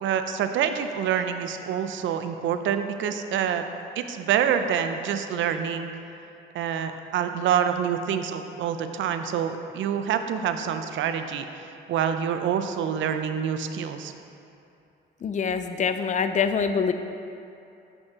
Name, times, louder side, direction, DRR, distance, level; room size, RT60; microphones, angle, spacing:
voice 1, 0.0-3.7 4.0-5.9 6.5-11.5 11.9-14.1, right 8 dB, 75° right, 8 dB, 0.5 m, -26 dB
voice 2, 15.2-16.9, left 6 dB, 40° left, 9 dB, 0.4 m, -25 dB
7.7 x 5.2 x 3.6 m, 2.7 s
cardioid pair, 90°, 20 cm